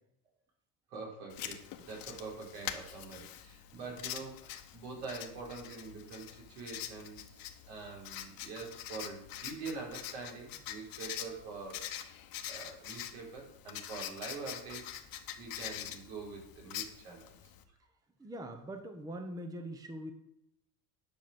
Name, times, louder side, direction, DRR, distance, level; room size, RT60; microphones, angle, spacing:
voice 1, 0.9-11.9 12.5-14.9 15.4-17.3, right 4 dB, 80° right, -1 dB, 5.0 m, -45 dB
Writing, 1.3-17.6, left 11 dB, 45° left, 1.1 m, -45 dB
voice 2, 18.2-20.1, right 1 dB, 10° right, 6 dB, 0.8 m, -42 dB
10.5 x 6.1 x 6.9 m, 0.80 s
cardioid pair, 150°, 49 cm